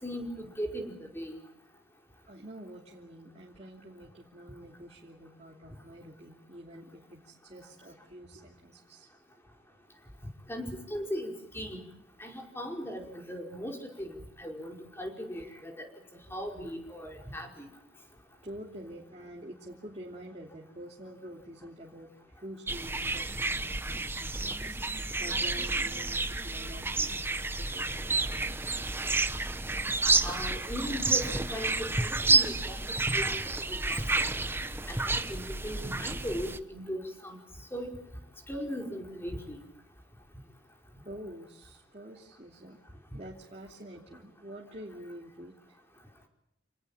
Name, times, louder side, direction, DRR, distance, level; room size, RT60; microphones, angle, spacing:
voice 1, 0.0-1.3 10.5-11.8 12.2-15.8 16.3-17.5 30.2-32.8 33.1-33.4 33.7-34.2 34.9-37.4 37.7-38.0 38.5-39.6, equal, 15° left, 2 dB, 5.1 m, -38 dB
voice 2, 2.3-9.1 18.4-28.8 29.3-29.4 41.0-42.8 43.1-45.8, right 1 dB, 35° right, -2 dB, 3.0 m, -47 dB
sound 1, 22.7-36.6, right 3 dB, 10° right, 1.1 m, -30 dB
28.5 x 19.0 x 8.8 m, 0.82 s
head